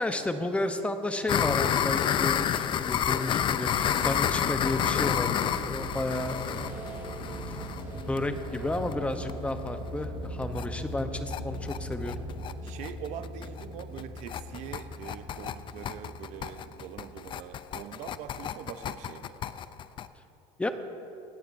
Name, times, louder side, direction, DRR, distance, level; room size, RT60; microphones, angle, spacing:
voice 1, 0.0-6.8 8.1-12.1 20.6-20.7, left 2 dB, 10° left, 8 dB, 0.8 m, -32 dB
sound 1, 1.3-8.9 9.3-9.4 9.7-9.8 10.0-10.1 10.4-10.7 11.0-20.1, left 9 dB, 35° left, 0.4 m, -30 dB
sound 2, 3.7-17.1, right 1 dB, 15° right, 2.7 m, -39 dB
voice 2, 12.6-19.3, right 9 dB, 55° right, 9 dB, 0.7 m, -43 dB
25.5 x 10.0 x 2.6 m, 2.8 s
supercardioid pair, 115°, 15 cm